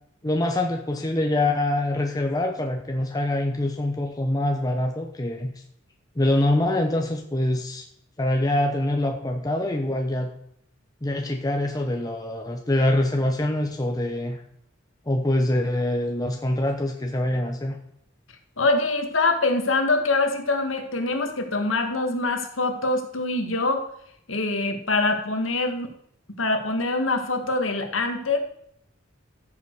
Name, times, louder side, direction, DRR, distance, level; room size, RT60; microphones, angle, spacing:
voice 1, 0.2-5.5 6.2-7.8 8.2-10.3 11.0-14.4 15.1-17.8, left 1 dB, 20° left, 3 dB, 0.9 m, -24 dB
voice 2, 18.6-23.8 24.3-25.9 26.4-28.4, left 2 dB, 90° left, 5 dB, 1.8 m, -24 dB
14.0 x 7.4 x 4.7 m, 0.69 s
head